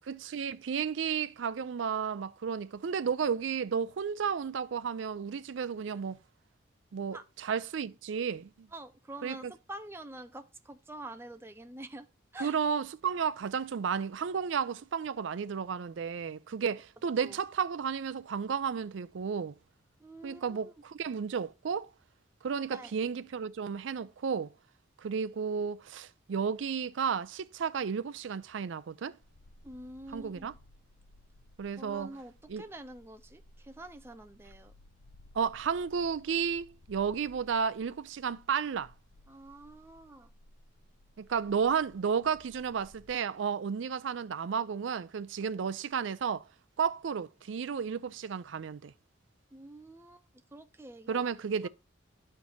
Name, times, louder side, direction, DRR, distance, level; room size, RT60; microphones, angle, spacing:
voice 1, 0.0-6.2 6.9-8.7 9.2-9.5 12.4-19.6 20.2-21.9 22.4-24.5 25.0-29.2 30.1-30.5 31.6-32.1 32.5-32.6 35.3-38.9 41.2-46.5 46.8-48.9 51.1-51.7, right 6 dB, 70° right, 0.4 m, -33 dB
voice 2, 8.7-12.1 12.3-12.5 17.2-17.4 20.0-20.7 22.7-22.9 29.6-30.5 31.8-34.7 39.3-40.3 49.5-50.2 50.5-51.3 51.6-51.7, right 1 dB, 10° right, 0.5 m, -46 dB
sound 1, 29.2-43.2, left 1 dB, 85° left, 0.7 m, -59 dB
12.5 x 4.5 x 2.8 m
head